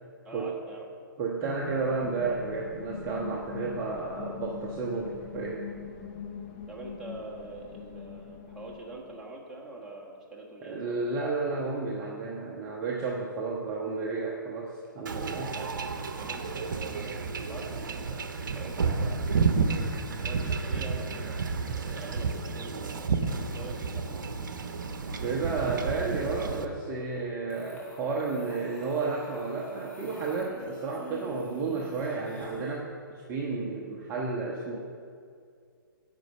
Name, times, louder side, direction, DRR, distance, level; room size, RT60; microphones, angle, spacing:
voice 1, 0.2-0.9 6.7-11.1 15.5-19.6 20.2-21.4 21.7-24.2, right 2 dB, 5° right, -5 dB, 1.4 m, -44 dB
voice 2, 1.2-5.6 10.6-15.6 25.2-32.9 33.3-34.8, right 4 dB, 20° right, -2 dB, 0.8 m, -32 dB
sound 1, 1.4-9.2, left 7 dB, 30° left, 0.8 m, -42 dB
Wind / Ocean / Boat Water vehicle, 15.1-26.7, right 4 dB, 60° right, 0.8 m, -31 dB
sound 2, 27.5-32.8, left 1 dB, 10° left, 1.1 m, -47 dB
9.0 x 5.3 x 6.8 m, 2.2 s
figure-of-eight pair, 130°, 11 cm